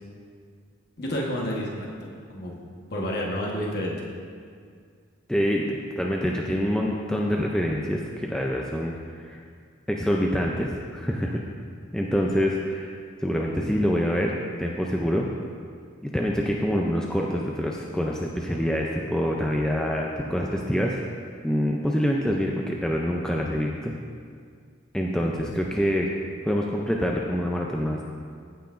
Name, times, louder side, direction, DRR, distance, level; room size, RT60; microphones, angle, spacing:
voice 1, 1.0-2.5 2.9-4.0, equal, 50° left, -2 dB, 1.2 m, -30 dB
voice 2, 5.3-9.4 9.9-11.4 11.9-13.0 13.2-15.3 16.0-21.0 21.4-23.9 24.9-26.1 26.4-28.0, equal, 5° left, -1 dB, 0.4 m, -26 dB
15.0 x 5.8 x 2.5 m, 2.1 s
head